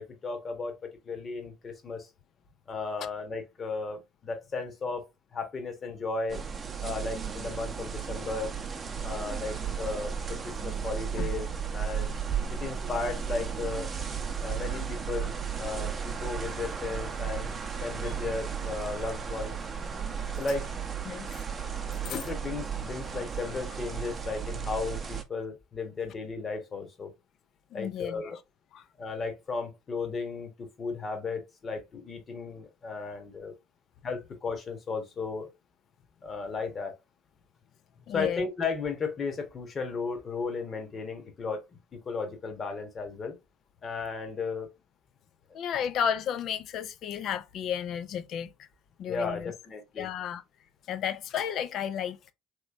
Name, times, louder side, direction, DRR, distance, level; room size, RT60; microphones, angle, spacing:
voice 1, 0.0-2.1 2.7-6.4 6.8-8.5 9.0-11.5 11.7-12.2 12.5-13.9 14.4-17.5 17.8-19.6 20.4-20.7 22.1-27.1 27.7-28.4 29.0-33.5 34.0-35.5 36.2-37.0 38.1-41.6 41.9-43.4 43.8-44.7 49.1-50.1, left 4 dB, 35° left, 1.2 m, -35 dB
sound 1, 6.3-25.2, right 7 dB, 30° right, 0.7 m, -34 dB
voice 2, 27.7-28.4 28.7-28.8 38.1-38.5 45.5-48.5 49.0-49.5 50.0-50.4 50.9-52.3, left 8 dB, 55° left, 0.4 m, -33 dB
3.1 x 3.1 x 2.5 m
hypercardioid pair, 70°, 0 cm